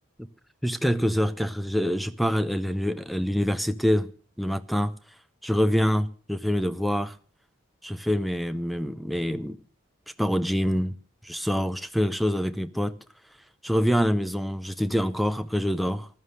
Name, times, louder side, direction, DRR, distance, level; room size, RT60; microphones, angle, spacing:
voice 1, 0.6-4.1 4.4-4.9 5.4-7.1 7.8-9.6 10.2-11.0 11.2-12.9 13.6-16.1, equal, ahead, 0.6 m, -25 dB
14.5 x 11.5 x 6.6 m
head